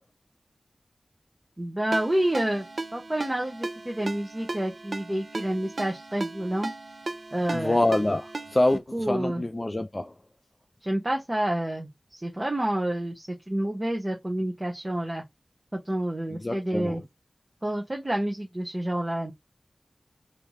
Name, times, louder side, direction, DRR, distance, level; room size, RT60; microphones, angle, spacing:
voice 1, 1.6-2.6 2.9-6.7 7.3-7.8 8.9-9.4 10.8-15.2 15.7-17.0 17.6-19.3, right 1 dB, 30° right, 1.0 m, -29 dB
Ringtone, 1.9-8.8, right 2 dB, 60° right, 0.6 m, -37 dB
voice 2, 7.5-10.1 16.3-17.0, left 1 dB, 35° left, 0.4 m, -26 dB
3.3 x 2.8 x 3.0 m
wide cardioid pair, 55°, 0 cm